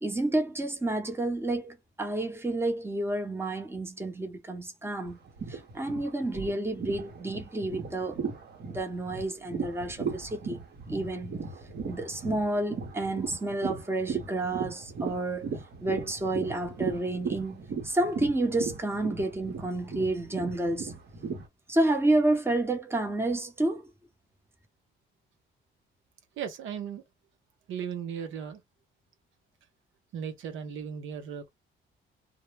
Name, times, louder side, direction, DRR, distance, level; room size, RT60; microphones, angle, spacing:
voice 1, 0.0-5.2 5.5-8.2 8.6-10.6 10.9-11.3 11.9-15.5 15.8-20.9 21.7-23.8, right 2 dB, 10° right, 0.8 m, -30 dB
sound 1, 5.0-21.5, right 5 dB, 55° right, 0.9 m, -37 dB
voice 2, 26.4-27.0 27.7-28.6 30.1-31.5, right 7 dB, 80° right, 0.7 m, -36 dB
2.0 x 2.0 x 3.1 m
cardioid pair, 90°, 20 cm